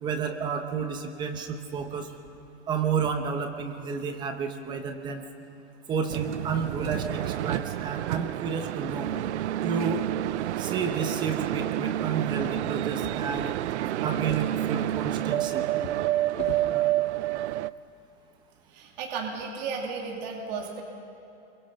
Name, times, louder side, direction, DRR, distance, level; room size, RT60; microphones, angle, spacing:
voice 1, 0.0-2.1 2.7-5.2 5.9-9.1 9.6-10.0 10.6-13.5 14.0-15.6, right 6 dB, 15° right, 6 dB, 0.9 m, -31 dB
sound 1, 6.1-17.7, right 13 dB, 80° right, 0.6 m, -29 dB
Drawer open or close, 12.8-13.8 14.1-16.8 17.6-17.8 18.2-18.3, left 7 dB, 80° left, 3.0 m, -44 dB
voice 2, 18.7-20.8, right 5 dB, 40° right, 0 dB, 2.7 m, -34 dB
27.0 x 23.5 x 5.7 m, 2.7 s
supercardioid pair, 170°, 34 cm